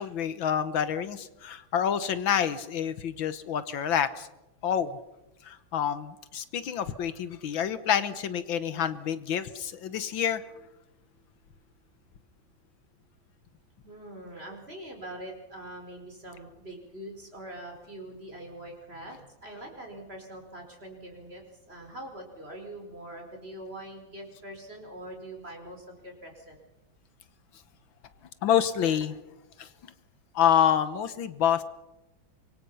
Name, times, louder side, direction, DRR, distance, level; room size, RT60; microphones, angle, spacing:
voice 1, 0.0-4.3 4.6-4.9 5.4-10.4 28.4-29.2 29.6-29.7 30.4-31.6, left 9 dB, 75° left, 13 dB, 1.8 m, -27 dB
voice 2, 13.8-26.6, right 1 dB, 30° right, 2 dB, 5.1 m, -43 dB
25.5 x 23.0 x 5.6 m, 0.95 s
omnidirectional pair, 2.2 m